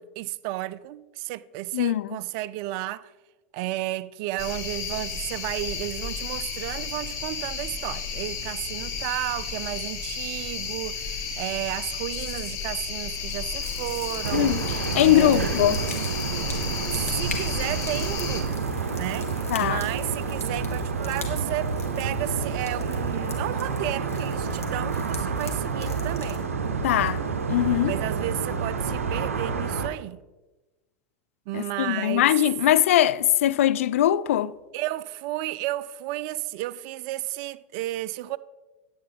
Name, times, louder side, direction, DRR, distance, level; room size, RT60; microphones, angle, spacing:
voice 1, 0.0-3.1 3.5-14.6 15.0-15.5 17.0-26.4 26.9-27.2 27.8-30.2 31.5-32.3 34.7-38.4, right 16 dB, 50° right, 0.4 m, -33 dB
voice 2, 1.7-2.1 14.3-14.6 14.9-15.8 19.5-19.8 26.8-27.2 27.5-27.9 31.5-34.5, left 12 dB, 70° left, 0.3 m, -21 dB
sound 1, 4.4-18.4, left 5 dB, 45° left, 2.0 m, -33 dB
sound 2, 13.6-29.9, left 3 dB, 90° left, 1.8 m, -42 dB
sound 3, 14.2-29.9, right 5 dB, 80° right, 0.7 m, -29 dB
11.0 x 8.7 x 3.5 m
hypercardioid pair, 90°, 8 cm